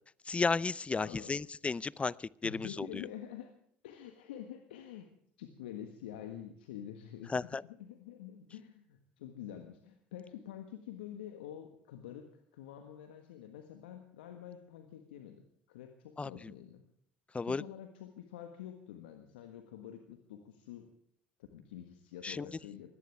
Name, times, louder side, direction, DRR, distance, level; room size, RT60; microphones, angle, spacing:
voice 1, 0.3-2.9 7.3-7.6 16.2-16.5 17.3-17.6 22.2-22.5, left 4 dB, 20° left, 23 dB, 0.6 m, -33 dB
voice 2, 0.9-1.4 2.4-3.6 3.8-5.1 5.4-16.8 17.4-20.9 21.4-22.9, left 10 dB, 80° left, 7 dB, 1.5 m, -47 dB
23.0 x 17.5 x 3.5 m, 0.65 s
hypercardioid pair, 60°, 5 cm